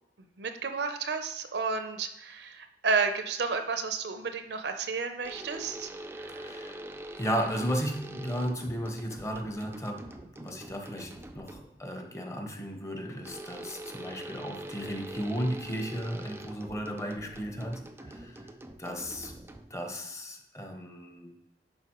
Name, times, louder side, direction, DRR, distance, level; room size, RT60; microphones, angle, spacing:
voice 1, 0.4-6.4, right 4 dB, 65° right, 7 dB, 0.6 m, -32 dB
sound 1, 5.2-11.9 13.2-19.9, right 1 dB, 15° right, 0.4 m, -44 dB
voice 2, 6.3-6.8 7.2-10.1 10.4-17.8 18.1-18.5 18.8-19.4 19.7-21.3, equal, 20° left, 3 dB, 0.8 m, -35 dB
10.5 x 4.1 x 3.0 m, 0.83 s
head